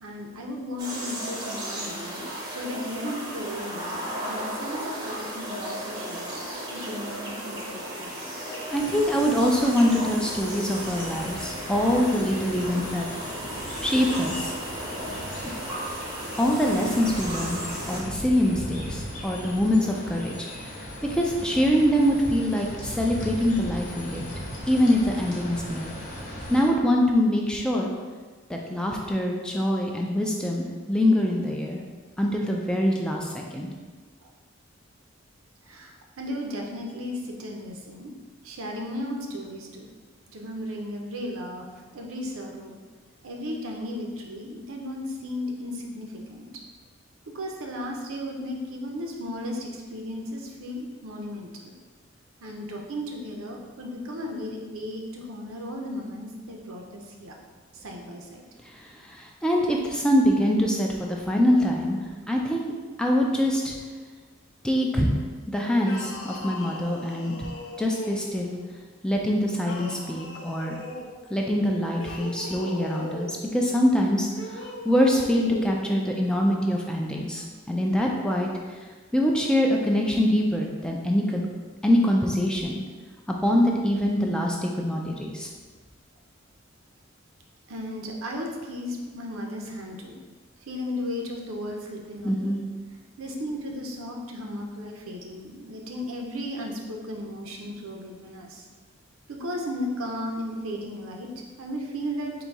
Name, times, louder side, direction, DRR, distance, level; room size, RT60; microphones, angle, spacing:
voice 1, 0.0-6.3 6.7-8.2 34.2-34.3 35.6-38.1 38.4-39.8 40.3-41.7 41.9-42.8 43.2-46.5 47.3-51.7 52.4-57.4 57.7-58.4 87.7-90.1 90.6-92.6 93.2-98.7 99.3-102.3, left 1 dB, 85° right, 1 dB, 0.7 m, -35 dB
sound 1, 0.8-18.0, right 1 dB, 20° right, 0.7 m, -35 dB
voice 2, 8.4-13.1 13.8-14.5 15.4-15.6 16.4-24.2 24.7-25.9 26.5-27.9 28.5-31.8 32.2-33.7 58.6-62.0 62.3-62.7 63.0-63.7 64.6-65.2 65.5-67.5 67.8-68.6 69.0-70.8 71.3-78.5 79.1-81.4 81.8-82.8 83.3-85.5 92.2-92.6, equal, 5° left, -1 dB, 0.3 m, -24 dB
sound 2, 8.7-26.7, equal, 35° left, 0.9 m, -38 dB
sound 3, 65.8-68.5 69.6-71.1 71.9-73.4 74.3-75.8, left 1 dB, 65° left, 0.6 m, -39 dB
4.0 x 2.7 x 4.6 m, 1.4 s
head